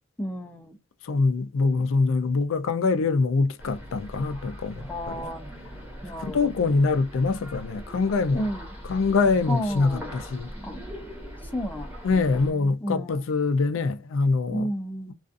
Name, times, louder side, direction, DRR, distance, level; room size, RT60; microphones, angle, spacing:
voice 1, 0.2-0.8 4.9-5.5 6.0-6.5 8.3-8.7 9.5-10.1 10.6-10.8 11.5-11.9 12.3-12.5 12.8-13.2 14.5-15.1, equal, 10° left, 0.4 m, -32 dB
voice 2, 1.0-5.3 6.1-8.5 8.8-10.5 12.0-14.7, left 4 dB, 75° left, 0.4 m, -24 dB
sound 1, 3.6-12.5, equal, 10° right, 0.9 m, -40 dB
2.4 x 2.4 x 2.4 m
head